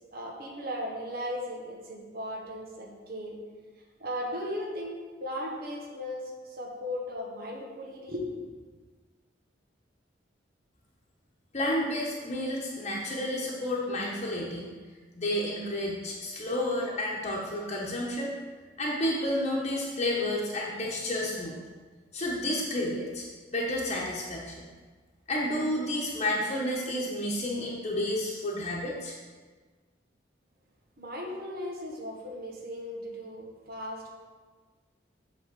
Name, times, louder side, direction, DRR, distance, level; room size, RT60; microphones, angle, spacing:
voice 1, 0.1-3.4 4.0-8.4 31.0-34.1, left 1 dB, 55° right, -1 dB, 1.4 m, -37 dB
voice 2, 11.5-14.7 15.2-18.3 18.8-21.6 22.1-23.3 23.5-24.7 25.3-29.2, left 1 dB, 35° left, -4 dB, 1.1 m, -31 dB
7.9 x 3.9 x 6.7 m, 1.4 s
head